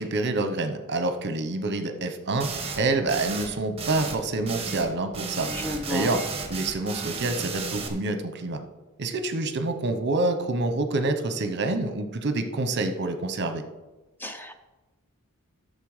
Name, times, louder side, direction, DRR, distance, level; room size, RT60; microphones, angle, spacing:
voice 1, 0.0-5.5 5.9-6.2 6.5-8.6 9.0-13.6, right 2 dB, 50° right, 8 dB, 0.9 m, -27 dB
sound 1, 2.4-2.8 3.1-3.5 3.8-4.2 4.4-4.9 5.1-7.9, right 4 dB, 25° right, 1.3 m, -33 dB
voice 2, 5.5-6.2 14.2-14.5, left 1 dB, 10° left, 7 dB, 0.5 m, -32 dB
11.0 x 6.6 x 4.9 m, 1.1 s
head